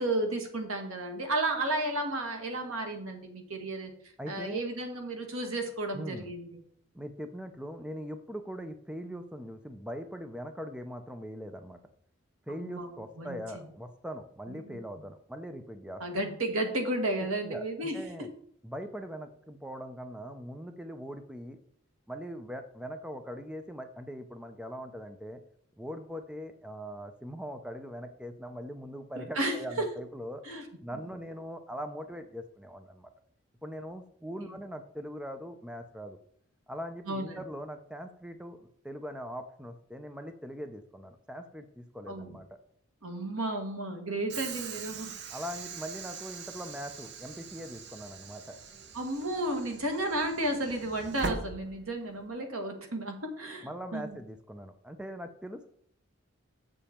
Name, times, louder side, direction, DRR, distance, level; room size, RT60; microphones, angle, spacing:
voice 1, 0.0-3.9 4.3-6.6 12.5-13.6 14.5-14.8 16.0-18.3 29.2-29.9 30.4-30.6 34.4-34.5 37.1-37.4 42.1-42.4 43.0-45.2 48.9-54.2, right 1 dB, 85° right, 4 dB, 1.7 m, -33 dB
voice 2, 4.2-4.6 5.9-6.3 6.9-11.8 12.5-16.0 17.4-18.3 18.6-21.6 22.1-25.4 25.8-30.4 30.8-33.1 33.6-36.2 36.7-42.6 45.3-48.6 53.6-55.7, equal, 5° right, 8 dB, 0.5 m, -41 dB
Train / Sliding door, 44.3-52.3, right 4 dB, 50° right, 0.7 m, -42 dB
7.4 x 7.1 x 4.3 m, 0.64 s
head